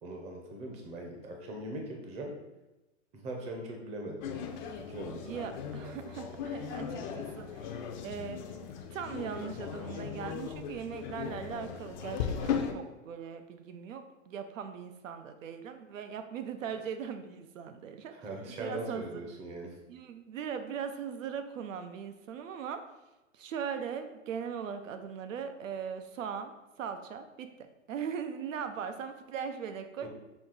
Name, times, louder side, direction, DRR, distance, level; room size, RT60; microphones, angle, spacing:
voice 1, 0.0-2.3 3.1-4.2 4.8-5.5 18.1-19.8 30.0-30.1, right 1 dB, 15° right, 1 dB, 0.6 m, -40 dB
sound 1, 4.2-12.7, left 7 dB, 40° left, 0.5 m, -37 dB
voice 2, 5.2-8.4 8.9-18.1 18.6-19.2 19.9-22.9 23.3-30.1, right 7 dB, 85° right, 8 dB, 0.6 m, -39 dB
5.9 x 2.3 x 3.8 m, 1.0 s
hypercardioid pair, 140°, 38 cm